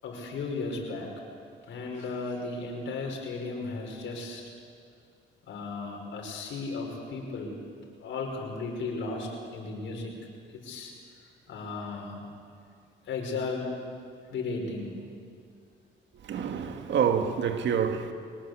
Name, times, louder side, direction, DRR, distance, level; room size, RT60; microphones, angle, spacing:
voice 1, 0.0-1.1 1.7-4.4 5.5-7.5 8.0-10.1 10.5-10.9 11.5-12.2 13.1-13.7 14.3-15.0, left 3 dB, 70° left, 5.7 m, -35 dB
voice 2, 16.2-18.1, right 7 dB, 65° right, 1.9 m, -27 dB
24.0 x 19.5 x 8.3 m
cardioid pair, 90°, 20 cm